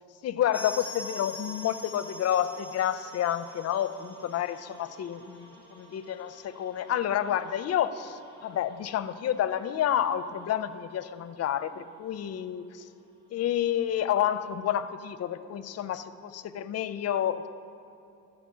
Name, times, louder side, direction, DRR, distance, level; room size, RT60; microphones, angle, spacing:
voice 1, 0.2-12.9 13.3-17.5, left 10 dB, 55° left, 13 dB, 0.5 m, -29 dB
sound 1, 0.5-11.1 11.3-11.4 11.7-11.8 12.4-12.5, left 1 dB, 15° right, 2.6 m, -46 dB
13.5 x 5.0 x 7.2 m, 2.6 s
cardioid pair, 90°, 30 cm